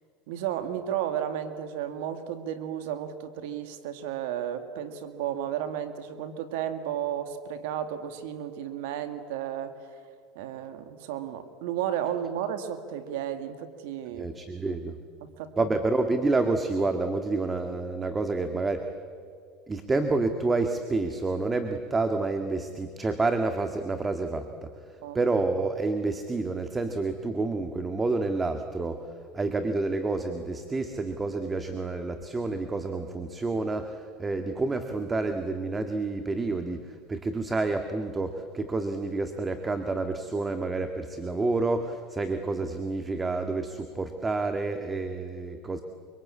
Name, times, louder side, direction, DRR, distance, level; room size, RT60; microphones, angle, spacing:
voice 1, 0.3-9.8 10.4-14.3 15.2-15.7 25.0-25.2, right 10 dB, 75° right, 9 dB, 1.9 m, -33 dB
voice 2, 14.1-15.0 15.6-18.9 19.7-45.8, right 3 dB, 20° right, 6 dB, 1.9 m, -29 dB
25.5 x 25.0 x 8.6 m, 2.3 s
supercardioid pair, 100°, 0 cm